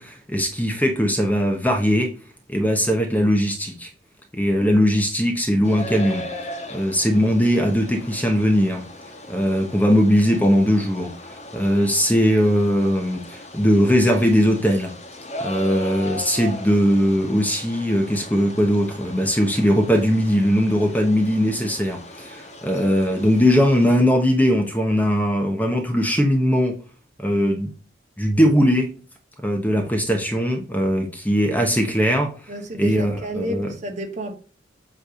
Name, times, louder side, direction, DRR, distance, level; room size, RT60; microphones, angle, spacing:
voice 1, 0.0-2.1 2.5-3.9 4.3-6.2 6.7-8.8 9.3-14.9 15.4-26.7 27.2-27.7 28.2-28.9 29.4-32.5 32.8-33.7, equal, 10° left, 1.0 m, -20 dB
sound 1, 5.6-23.9, left 1 dB, 35° left, 1.4 m, -38 dB
voice 2, 32.5-34.3, right 1 dB, 40° right, 1.7 m, -30 dB
8.2 x 3.3 x 6.3 m
head